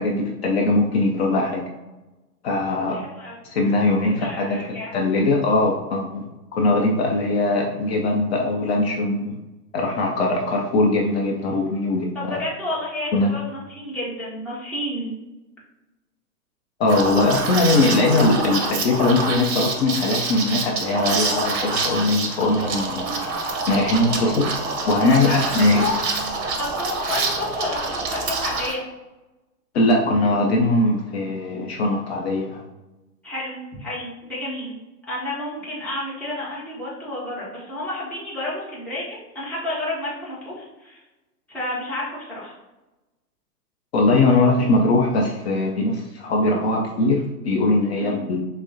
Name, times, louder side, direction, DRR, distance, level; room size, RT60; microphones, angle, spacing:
voice 1, 0.0-1.6 2.4-3.0 3.4-4.6 4.9-6.2 6.5-9.3 9.7-12.4 13.1-13.3 16.8-23.1 23.7-24.5 24.9-25.8 29.7-32.6 43.9-48.4, left 2 dB, 40° left, -1 dB, 0.6 m, -20 dB
voice 2, 2.9-3.4 4.2-5.1 12.1-15.1 23.0-23.2 25.2-26.0 26.6-28.8 33.2-34.7 35.1-41.0 41.5-42.5 48.0-48.2, left 1 dB, 5° left, -8 dB, 0.7 m, -30 dB
Liquid, 16.9-28.7, right 3 dB, 45° right, 0.8 m, -26 dB
5.8 x 2.1 x 2.7 m, 1.1 s
hypercardioid pair, 125°, 49 cm